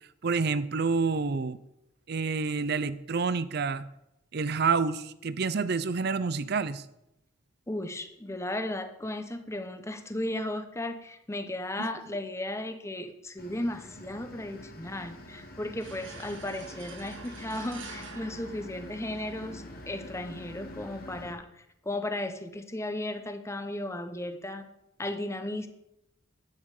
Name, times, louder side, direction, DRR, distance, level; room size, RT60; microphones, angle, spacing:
voice 1, 0.2-1.6 2.1-3.9 4.3-6.9 11.8-11.9, right 4 dB, 55° right, 15 dB, 0.6 m, -28 dB
voice 2, 7.7-24.6 25.0-25.7, left 1 dB, 15° left, 8 dB, 0.9 m, -35 dB
sound 1, 13.4-21.3, left 1 dB, 50° left, 1.6 m, -46 dB
sound 2, 15.8-19.4, right 4 dB, 75° right, 1.7 m, -47 dB
10.5 x 8.9 x 4.9 m, 0.83 s
head